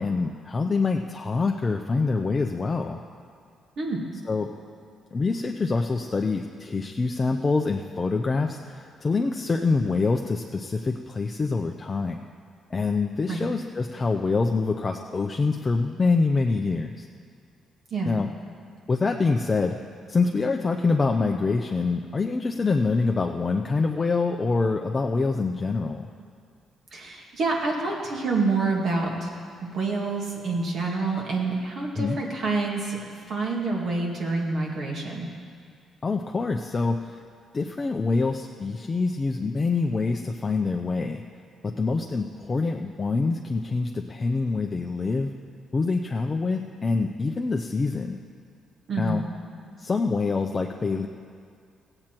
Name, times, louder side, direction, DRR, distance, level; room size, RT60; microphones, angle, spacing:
voice 1, 0.0-3.0 4.3-4.5 5.1-12.2 12.7-17.1 18.0-18.3 18.9-19.8 20.1-26.1 32.0-32.2 36.0-37.2 37.5-41.2 41.6-45.3 45.7-48.2 49.0-49.2 49.8-51.1, left 4 dB, 30° left, 2 dB, 0.6 m, -25 dB
voice 2, 26.9-29.3 29.6-35.3 48.9-49.2, right 3 dB, 60° right, -2 dB, 1.8 m, -27 dB
15.5 x 8.8 x 4.5 m, 2.3 s
cardioid pair, 90°, 0 cm